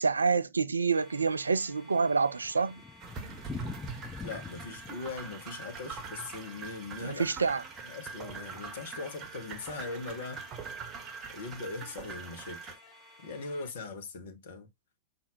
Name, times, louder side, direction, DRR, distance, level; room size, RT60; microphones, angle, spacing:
voice 1, 0.0-2.8 7.0-7.6, right 5 dB, 75° right, 0.3 m, -27 dB
sound 1, 0.9-13.7, left 1 dB, 35° left, 2.3 m, -56 dB
Thunder, 2.2-8.1 8.5-8.6 8.8-8.9 9.5-9.8, left 5 dB, 15° left, 0.3 m, -46 dB
sound 2, 3.0-12.7, right 5 dB, 30° right, 1.0 m, -43 dB
voice 2, 4.2-7.3 7.8-10.5 11.3-12.8 13.2-14.7, left 3 dB, 60° left, 1.1 m, -40 dB
5.7 x 2.6 x 3.0 m
figure-of-eight pair, 90°, 0 cm